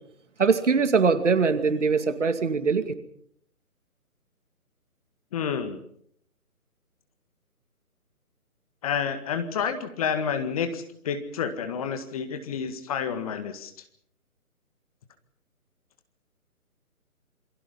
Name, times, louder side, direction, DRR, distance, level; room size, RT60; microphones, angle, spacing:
voice 1, 0.4-2.9, right 5 dB, 55° right, 10 dB, 2.4 m, -22 dB
voice 2, 5.3-5.8 8.8-13.7, left 7 dB, 25° left, 8 dB, 1.8 m, -29 dB
28.0 x 22.5 x 5.6 m, 0.66 s
figure-of-eight pair, 150°, 44 cm